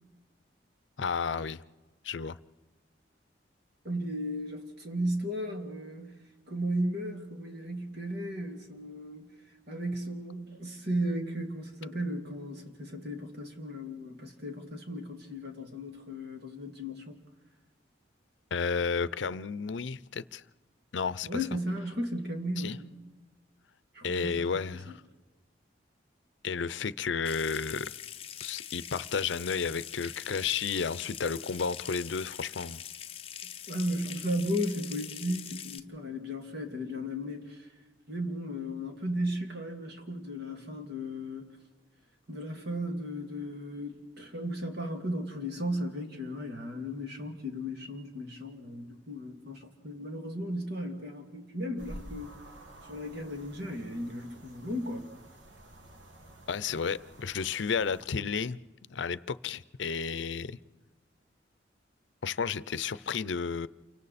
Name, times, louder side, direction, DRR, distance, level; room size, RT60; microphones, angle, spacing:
voice 1, 1.0-1.6 2.0-2.4 18.5-20.4 20.9-21.4 22.6-22.8 24.0-25.0 26.4-27.9 28.4-32.8 56.5-60.6 62.2-63.7, left 5 dB, 80° left, 0.6 m, -32 dB
voice 2, 3.8-6.2 6.5-9.3 9.7-17.2 21.2-22.8 23.9-24.6 33.7-37.7 38.1-41.6 42.3-52.3 52.9-55.1, equal, 60° right, 2.5 m, -35 dB
Water tap faucet / Sink (filling or washing) / Trickle dribble, 27.2-35.8, left 9 dB, 30° left, 0.6 m, -43 dB
sound 1, 51.8-58.0, equal, 80° right, 1.8 m, -50 dB
28.5 x 24.5 x 4.2 m
head